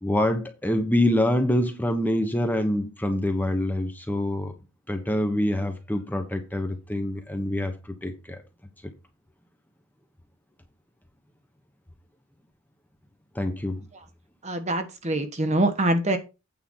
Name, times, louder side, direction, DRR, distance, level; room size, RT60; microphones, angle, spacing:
voice 1, 0.0-4.5 4.9-8.4 8.8-8.9 13.3-13.9, left 1 dB, 10° left, 1.0 m, -26 dB
voice 2, 14.4-16.2, right 1 dB, 30° right, 1.2 m, -24 dB
9.0 x 5.0 x 5.6 m
head